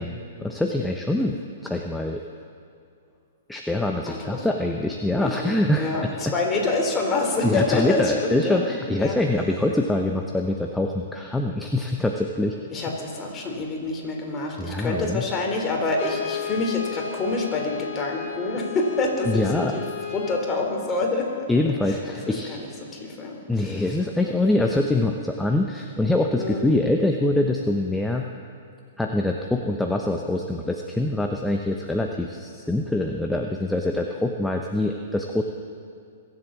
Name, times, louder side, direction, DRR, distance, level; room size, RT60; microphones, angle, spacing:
voice 1, 0.0-2.2 3.5-6.1 7.4-12.6 14.6-15.2 19.3-19.8 21.5-22.6 23.5-28.3 29.0-35.4, left 1 dB, 5° left, 2 dB, 0.9 m, -24 dB
voice 2, 4.0-4.5 5.2-8.6 9.0-9.2 12.7-19.9 20.1-21.4 21.9-24.3 26.4-26.6, left 3 dB, 20° left, 0 dB, 3.4 m, -27 dB
Brass instrument, 15.9-20.5, left 8 dB, 55° left, 1.8 m, -34 dB
22.5 x 8.0 x 7.4 m, 2.4 s
hypercardioid pair, 120°, 0 cm